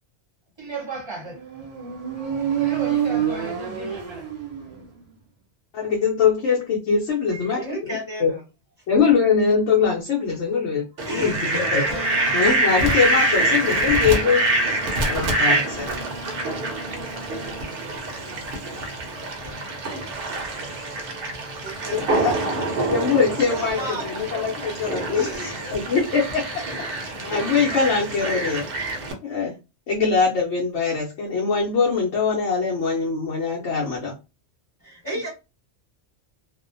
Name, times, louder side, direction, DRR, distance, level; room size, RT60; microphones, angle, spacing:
voice 1, 0.6-1.4 2.1-4.3, right 2 dB, 25° right, 0.7 m, -35 dB
Motorcycle, 1.3-5.0, right 10 dB, 85° right, 1.1 m, -27 dB
voice 2, 5.7-8.3 8.9-11.8 12.3-14.5 15.1-15.9 21.9-22.5 22.9-26.6 27.2-28.6 29.2-29.5 29.9-34.1, left 5 dB, 80° left, 1.0 m, -22 dB
voice 3, 7.3-8.4 11.0-12.3 21.6-22.3 23.5-24.0 25.1-25.8 34.8-35.3, equal, 20° left, 1.1 m, -32 dB
Fowl, 11.0-29.1, right 2 dB, 60° right, 0.8 m, -26 dB
sound 1, 11.8-17.7, equal, 50° left, 1.0 m, -39 dB
2.5 x 2.1 x 2.5 m
omnidirectional pair, 1.2 m